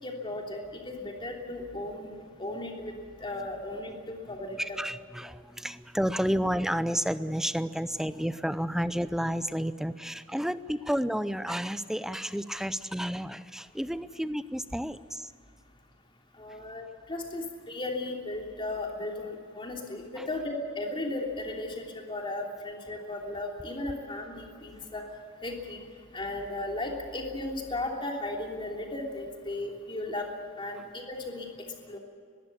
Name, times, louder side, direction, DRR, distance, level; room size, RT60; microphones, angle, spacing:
voice 1, 0.0-0.6 0.8-2.9 3.2-4.8 16.4-25.0 25.4-25.8 26.1-30.3 30.6-31.4 31.9-32.0, left 2 dB, 25° left, 1 dB, 3.2 m, -36 dB
voice 2, 4.6-15.3 16.5-16.6 20.2-20.3, equal, ahead, 13 dB, 0.5 m, -31 dB
21.0 x 15.5 x 9.7 m, 2.2 s
head